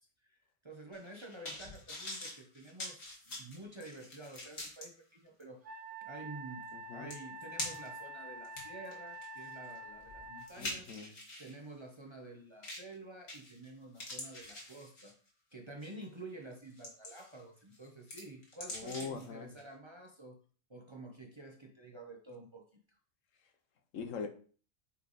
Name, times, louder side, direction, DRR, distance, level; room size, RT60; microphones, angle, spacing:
voice 1, 0.6-10.9 11.4-15.1 15.5-20.4 20.7-22.7, right 2 dB, 25° right, 2 dB, 0.7 m, -50 dB
sound 1, 0.9-4.9 5.4-5.5 6.7-6.8 7.1-8.0 8.4-11.5 12.6-12.9 13.3-13.7 14.0-15.3 15.8-16.0 16.5-17.4 17.7-19.3 19.6-19.7, left 1 dB, 55° left, 2.1 m, -44 dB
Wind instrument woodwind instrument, 5.6-10.5, right 2 dB, 65° right, 1.1 m, -47 dB
voice 2, 6.7-7.1 10.6-11.1 18.7-19.6 23.9-24.3, left 5 dB, 80° left, 7 dB, 1.2 m, -42 dB
8.4 x 3.3 x 4.0 m, 0.41 s
omnidirectional pair, 1.3 m